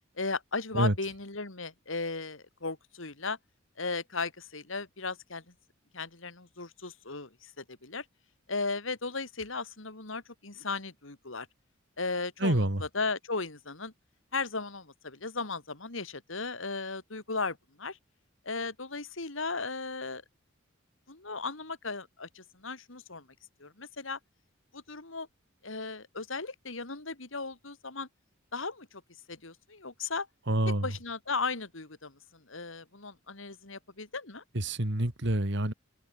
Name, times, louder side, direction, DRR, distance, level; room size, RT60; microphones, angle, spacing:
voice 1, 0.2-3.4 3.8-5.5 5.9-8.0 8.5-11.5 12.0-13.9 14.3-18.0 18.4-20.2 21.1-23.3 23.6-24.2 24.7-25.3 25.6-28.1 28.5-29.0 29.3-30.3 30.7-34.4, left 4 dB, 70° left, 2.7 m, -36 dB
voice 2, 12.4-12.8 30.5-30.9 34.5-35.7, right 1 dB, 60° right, 2.6 m, -27 dB
open air
head